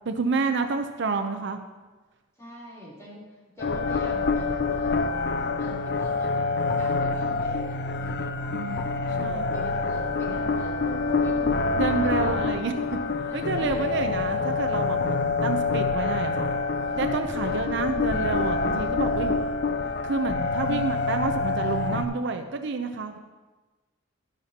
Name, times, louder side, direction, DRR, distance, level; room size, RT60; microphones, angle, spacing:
voice 1, 0.1-1.6 8.5-8.9 9.2-9.5 11.8-12.7 13.3-16.5 17.0-19.3 20.0-23.2, right 4 dB, 60° right, 6 dB, 0.6 m, -29 dB
voice 2, 2.4-3.2 3.6-12.7 13.3-14.7 17.4-17.7 20.6-21.0, equal, 15° left, -7 dB, 3.3 m, -42 dB
sound 1, 3.6-22.0, left 3 dB, 55° left, 0.5 m, -26 dB
11.5 x 11.0 x 2.8 m, 1.2 s
head